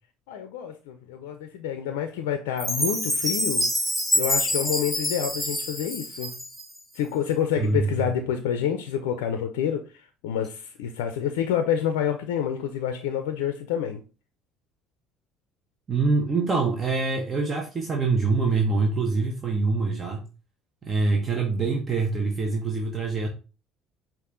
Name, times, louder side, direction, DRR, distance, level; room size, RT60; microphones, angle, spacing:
voice 1, 0.3-3.7 4.1-6.3 7.0-14.0, left 9 dB, 80° left, 7 dB, 0.4 m, -28 dB
Chime, 2.6-6.8, equal, 15° right, 2.3 m, -26 dB
voice 2, 7.6-7.9 15.9-20.3 20.8-23.3, right 3 dB, 35° right, 2 dB, 0.9 m, -25 dB
5.3 x 2.5 x 3.7 m, 0.34 s
hypercardioid pair, 65°, 0 cm